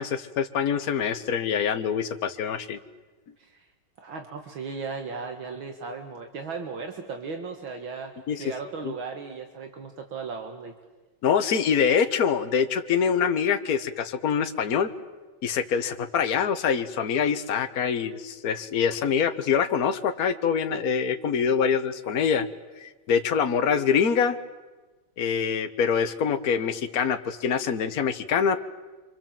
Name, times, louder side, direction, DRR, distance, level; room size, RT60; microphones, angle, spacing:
voice 1, 0.0-2.8 8.3-8.4 8.8-8.9 11.2-14.9 15.4-22.5 22.8-24.4 25.2-28.6, left 7 dB, 50° left, 7 dB, 1.5 m, -25 dB
voice 2, 4.0-8.1 8.4-10.7, right 5 dB, 75° right, 4 dB, 2.5 m, -36 dB
28.5 x 25.0 x 7.6 m, 1.2 s
omnidirectional pair, 2.2 m